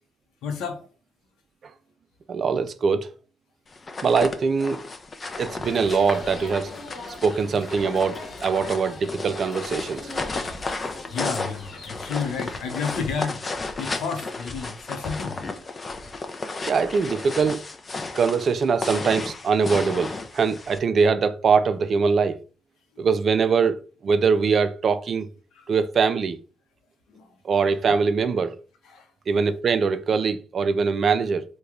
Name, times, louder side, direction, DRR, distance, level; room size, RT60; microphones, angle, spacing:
voice 1, 0.4-0.8 11.1-13.4 13.8-15.4 25.5-25.7 27.1-27.3 28.9-29.1, left 5 dB, 85° left, 0.7 m, -31 dB
voice 2, 2.3-3.1 4.0-4.8 5.4-6.7 7.2-10.1 16.6-17.6 18.2-22.4 23.0-23.8 24.0-25.3 25.7-26.4 27.4-28.5 29.3-31.5, right 5 dB, 50° right, 0.4 m, -22 dB
sound 1, 3.7-20.8, left 3 dB, 30° left, 0.5 m, -34 dB
sound 2, 5.6-13.2, left 2 dB, 55° left, 1.0 m, -41 dB
3.0 x 2.2 x 3.6 m
cardioid pair, 90°, 0 cm